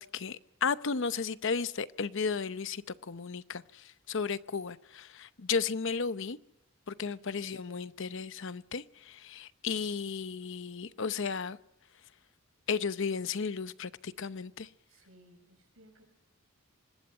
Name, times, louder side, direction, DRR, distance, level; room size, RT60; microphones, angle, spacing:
voice 1, 0.0-3.6 4.1-6.4 6.9-11.6 12.7-14.7, left 5 dB, 60° left, 0.8 m, -34 dB
voice 2, 7.1-7.8 14.9-16.0, right 1 dB, 70° right, 6.4 m, -59 dB
25.5 x 20.5 x 5.6 m
head